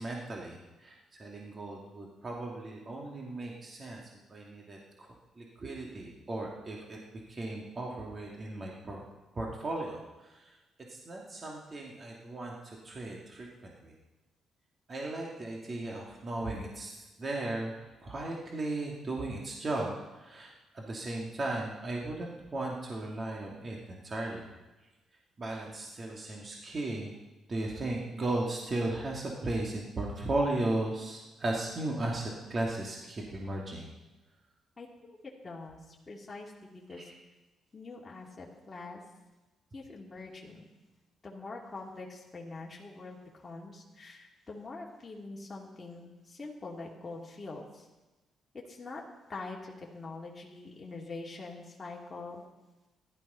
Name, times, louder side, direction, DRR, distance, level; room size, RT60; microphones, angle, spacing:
voice 1, 0.0-4.0 4.3-7.0 7.3-9.0 9.3-10.5 10.9-13.9 14.9-16.9 17.2-17.7 18.0-24.4 25.4-27.1 27.5-33.8 37.0-37.1, right 2 dB, 35° right, -1 dB, 2.6 m, -36 dB
voice 2, 34.8-35.2 35.4-37.1 37.7-39.0 39.7-40.7 41.2-43.2 43.4-47.9 48.5-49.0 49.3-52.4, left 3 dB, 25° left, -3 dB, 2.8 m, -44 dB
15.0 x 12.5 x 5.7 m, 1.1 s
cardioid pair, 90°, 0 cm